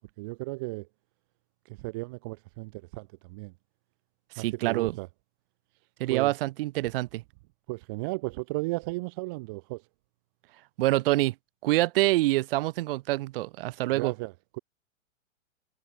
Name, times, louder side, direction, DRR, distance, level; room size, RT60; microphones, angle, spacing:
voice 1, 0.2-0.9 1.8-3.5 4.4-5.1 6.1-6.3 7.7-9.8 13.9-14.6, right 25 dB, 20° right, 0.3 m, -35 dB
voice 2, 4.4-5.0 6.0-7.2 10.8-11.3 11.6-14.1, right 18 dB, 45° right, 2.2 m, -26 dB
figure-of-eight pair, 110°, 37 cm